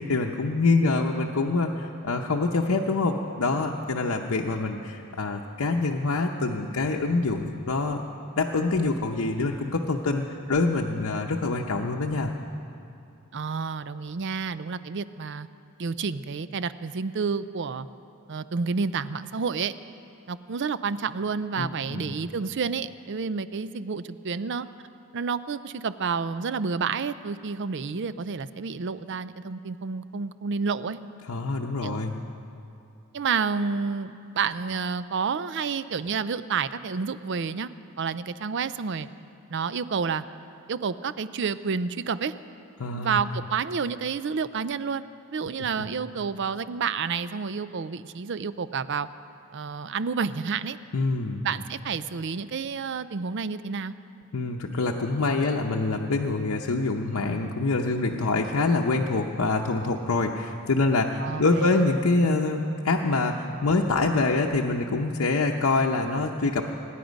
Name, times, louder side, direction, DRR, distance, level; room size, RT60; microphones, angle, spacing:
voice 1, 0.1-8.0 8.4-12.3 21.6-22.1 31.3-32.2 42.8-43.2 45.8-45.9 50.9-51.4 54.3-66.7, left 3 dB, 75° left, 0 dB, 0.8 m, -25 dB
voice 2, 13.3-15.5 15.8-17.9 18.3-19.7 20.3-24.7 25.1-31.0 31.8-32.0 33.1-37.7 38.0-39.1 39.5-40.2 40.7-42.3 42.9-45.0 45.3-49.1 49.5-50.8 51.4-53.9 61.2-61.9, right 5 dB, 55° right, 14 dB, 0.5 m, -29 dB
25.0 x 10.0 x 5.2 m, 2.6 s
head